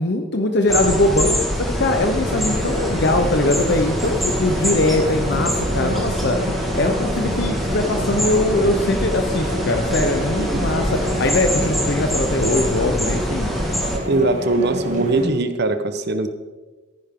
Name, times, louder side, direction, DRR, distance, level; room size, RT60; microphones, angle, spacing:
voice 1, 0.0-6.4 6.7-13.5, left 2 dB, 50° left, 5 dB, 0.8 m, -21 dB
sound 1, 0.7-14.0, equal, ahead, 1.8 m, -24 dB
sound 2, 1.9-15.3, equal, 35° right, 2.9 m, -29 dB
voice 2, 10.4-10.7 14.1-16.3, right 2 dB, 50° right, 9 dB, 0.9 m, -21 dB
15.0 x 10.5 x 3.7 m, 1.3 s
head